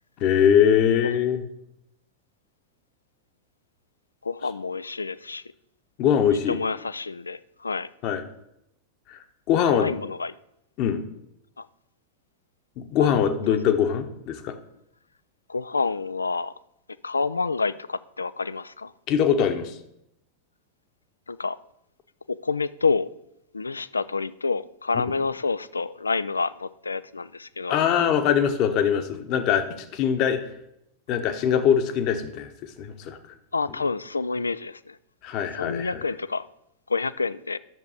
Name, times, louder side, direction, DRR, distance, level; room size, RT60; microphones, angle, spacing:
voice 1, 0.2-1.4 6.0-6.6 8.0-8.2 9.1-9.2 9.5-10.0 10.8-11.0 12.8-14.6 19.1-19.7 24.9-25.0 27.7-30.4 31.1-33.2 35.2-36.0, left 8 dB, 40° left, 8 dB, 1.0 m, -22 dB
voice 2, 4.2-5.4 6.5-7.9 9.8-10.3 11.6-11.7 13.0-13.1 13.5-13.6 15.5-16.5 17.0-18.9 21.3-21.6 22.3-23.1 23.5-27.8 33.5-35.0 35.6-36.5 36.9-37.6, left 4 dB, 80° left, 17 dB, 0.3 m, -28 dB
10.5 x 7.0 x 5.0 m, 0.81 s
figure-of-eight pair, 90°, 0 cm